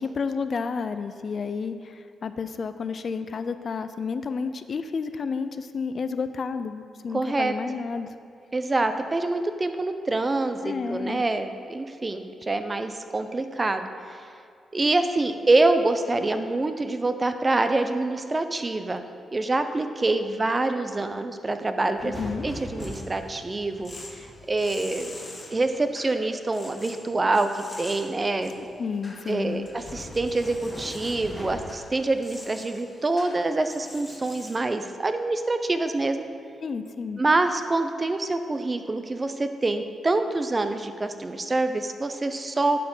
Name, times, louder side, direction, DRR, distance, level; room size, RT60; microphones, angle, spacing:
voice 1, 0.0-8.1 10.6-11.2 22.0-22.5 28.6-29.7 36.6-37.2, left 5 dB, 55° left, 10 dB, 0.4 m, -31 dB
voice 2, 7.1-7.5 8.5-14.2 14.7-19.0 19.3-22.1 22.4-25.1 25.5-28.5 29.3-36.3 37.2-42.9, right 2 dB, 30° right, 8 dB, 0.6 m, -26 dB
sound 1, 22.0-25.8 28.4-28.8 29.2-31.5, equal, 5° left, 1.9 m, -40 dB
sound 2, 22.6-34.6, left 2 dB, 30° left, 1.5 m, -46 dB
11.0 x 4.5 x 5.5 m, 2.3 s
cardioid pair, 75°, 0 cm